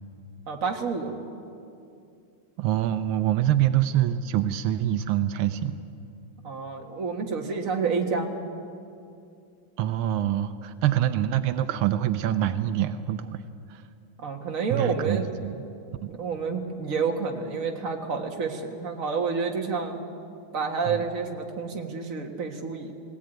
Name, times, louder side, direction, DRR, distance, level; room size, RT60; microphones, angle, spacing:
voice 1, 0.5-1.1 6.4-8.3 14.2-15.4 16.1-20.0 20.5-22.9, right 5 dB, 40° right, 2 dB, 1.9 m, -29 dB
voice 2, 2.6-5.7 9.8-13.4 13.7-13.8 14.7-15.6 16.0-16.1 20.9-21.0, right 12 dB, 85° right, 11 dB, 1.6 m, -25 dB
20.0 x 17.0 x 9.1 m, 2.5 s
omnidirectional pair, 2.3 m